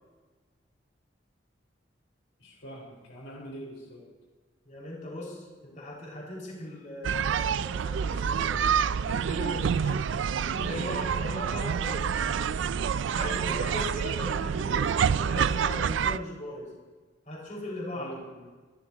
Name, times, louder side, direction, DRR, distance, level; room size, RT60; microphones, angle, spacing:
voice 1, 2.4-4.0 16.5-16.6 17.9-18.5, right 1 dB, 85° left, -3 dB, 4.4 m, -44 dB
voice 2, 4.6-8.6 8.9-10.0 10.4-12.5 13.1-16.6 17.3-18.2, left 1 dB, 40° left, -4 dB, 5.2 m, -39 dB
sound 1, 7.0-16.2, right 7 dB, 70° right, 0.4 m, -27 dB
26.0 x 12.5 x 2.9 m, 1.3 s
head